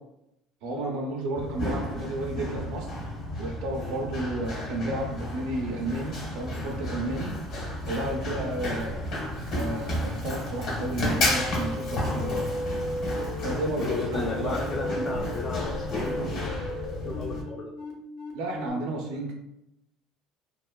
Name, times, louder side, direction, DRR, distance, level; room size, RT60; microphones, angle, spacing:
voice 1, 0.6-2.9 3.4-7.3 7.9-9.1 9.5-12.5 13.4-14.6 14.9-15.2 18.3-19.3, right 2 dB, 85° right, 0 dB, 0.5 m, -32 dB
Run, 1.4-17.4, left 1 dB, 60° left, 1.0 m, -32 dB
sound 1, 11.2-18.7, left 2 dB, 75° left, 0.6 m, -36 dB
voice 2, 13.8-16.2 17.0-17.7, left 3 dB, 40° left, -1 dB, 0.3 m, -34 dB
3.0 x 2.2 x 2.2 m, 0.83 s
cardioid pair, 115°, 0 cm